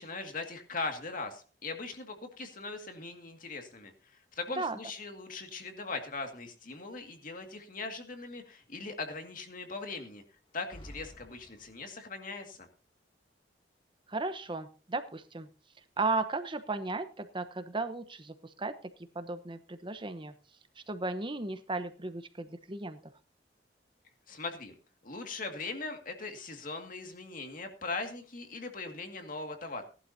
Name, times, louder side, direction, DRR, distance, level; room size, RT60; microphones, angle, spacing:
voice 1, 0.0-10.2 10.5-12.7 24.3-24.7 25.0-29.8, left 3 dB, 50° left, 5 dB, 2.1 m, -40 dB
sound 1, 10.5-12.1, equal, 30° left, 1.2 m, -51 dB
voice 2, 14.1-15.5 16.0-18.8 19.1-20.3 20.9-23.0, right 3 dB, 25° right, 10 dB, 1.0 m, -35 dB
18.0 x 11.5 x 2.8 m, 0.36 s
head